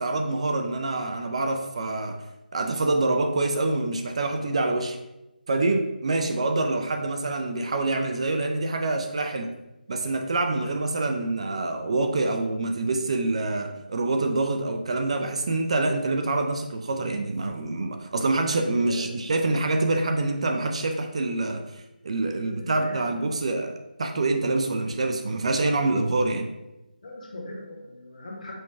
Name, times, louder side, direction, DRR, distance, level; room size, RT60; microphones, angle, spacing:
voice 1, 0.0-2.2 2.5-5.0 5.5-9.5 9.9-23.7 24.0-26.5, right 2 dB, 40° right, 5 dB, 0.3 m, -26 dB
voice 2, 18.7-19.1 22.4-23.5 27.0-28.5, left 1 dB, 50° left, -2 dB, 1.1 m, -39 dB
5.3 x 2.2 x 3.5 m, 0.97 s
figure-of-eight pair, 155°, 5 cm